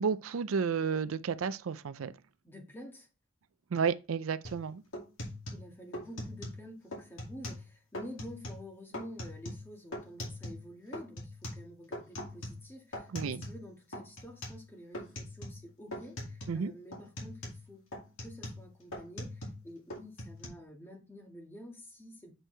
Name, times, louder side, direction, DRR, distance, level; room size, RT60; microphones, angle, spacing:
voice 1, 0.0-2.1 3.7-4.8 13.1-13.4 16.5-16.7, right 6 dB, 90° right, 0.5 m, -32 dB
voice 2, 2.4-3.1 5.5-17.8 18.2-22.3, equal, 10° left, 1.7 m, -49 dB
sound 1, 4.4-4.6 4.9-6.6 6.9-7.7 7.9-8.6 8.9-10.7 10.9-13.7 13.9-14.6 14.9-15.7 15.9-16.6 16.9-19.6 19.9-20.5, left 1 dB, 75° left, 2.3 m, -42 dB
7.7 x 4.6 x 3.3 m
head